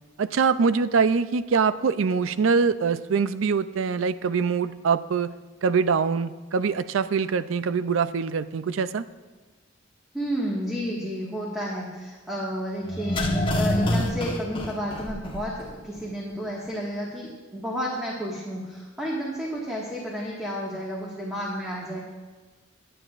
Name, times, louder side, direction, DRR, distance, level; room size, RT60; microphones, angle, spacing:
voice 1, 0.2-5.3 5.6-9.0, right 5 dB, 90° right, 13 dB, 0.4 m, -23 dB
voice 2, 10.1-22.0, equal, 5° right, -5 dB, 1.7 m, -31 dB
sound 1, 12.9-15.7 16.0-16.1, left 1 dB, 25° left, 1.2 m, -26 dB
22.0 x 9.1 x 2.5 m, 1.3 s
head